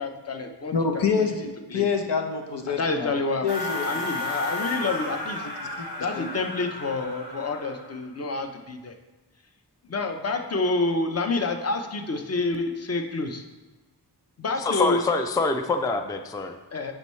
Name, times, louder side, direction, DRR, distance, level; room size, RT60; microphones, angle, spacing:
voice 1, 0.0-0.7 1.7-1.8 2.7-3.5 3.8-5.4 6.0-8.9 9.9-13.4 14.4-15.0 16.7-16.9, left 3 dB, 35° left, 5 dB, 0.7 m, -28 dB
voice 2, 0.7-4.0 5.4-5.5 6.1-6.3, left 5 dB, 80° left, 4 dB, 0.9 m, -27 dB
sound 1, 3.5-8.0, left 2 dB, 60° left, 2.0 m, -33 dB
voice 3, 14.5-16.6, left 3 dB, 10° left, 7 dB, 0.3 m, -25 dB
8.7 x 5.4 x 3.1 m, 1.1 s
wide cardioid pair, 95°, 42 cm